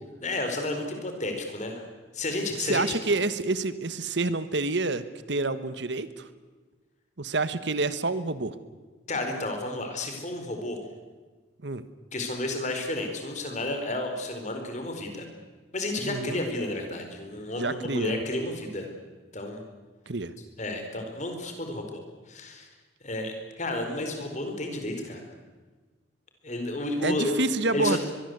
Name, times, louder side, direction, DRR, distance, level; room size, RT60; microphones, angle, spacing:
voice 1, 0.2-1.9 2.1-3.0 9.1-10.8 12.1-15.3 15.7-18.9 19.3-19.6 20.6-22.0 22.3-22.7 23.0-25.2 26.4-27.4 27.7-28.0, left 2 dB, 40° left, 5 dB, 4.5 m, -31 dB
voice 2, 2.7-6.3 7.2-8.6 11.6-11.8 16.0-16.4 17.5-18.1 20.1-20.3 27.0-28.0, right 3 dB, 65° right, 14 dB, 1.3 m, -28 dB
23.5 x 22.5 x 8.1 m, 1.3 s
head